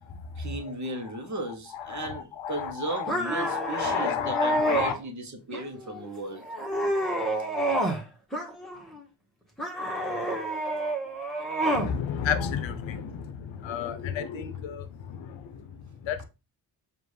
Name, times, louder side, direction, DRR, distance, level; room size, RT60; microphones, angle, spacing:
voice 1, 0.4-6.7 7.7-7.8 8.6-8.7, right 2 dB, 40° right, 1.1 m, -36 dB
voice 2, 1.9-3.1 3.4-4.9 11.7-16.2, left 8 dB, 80° left, 0.7 m, -32 dB
sound 1, 3.1-5.0 5.5-6.0 6.4-8.0 8.3-9.0 9.6-11.9, right 1 dB, ahead, 1.3 m, -29 dB
4.9 x 2.6 x 3.1 m
cardioid pair, 60°, 45 cm